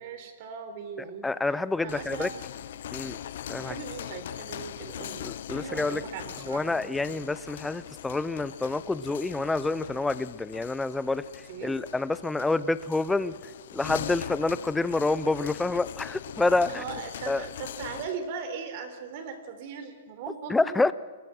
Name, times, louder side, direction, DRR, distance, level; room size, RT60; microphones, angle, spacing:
voice 1, 0.0-2.4 3.6-5.2 5.5-7.3 11.4-11.8 16.7-20.8, right 6 dB, 45° right, 8 dB, 4.2 m, -39 dB
voice 2, 1.2-2.3 2.9-3.2 3.5-3.7 5.2-6.0 6.5-11.2 11.6-13.4 13.7-16.8 17.3-17.4 20.5-20.9, left 3 dB, 5° left, 15 dB, 0.7 m, -27 dB
sound 1, 1.8-18.2, left 10 dB, 65° left, 1.0 m, -41 dB
29.5 x 23.0 x 6.3 m, 1.4 s
hypercardioid pair, 145°, 0 cm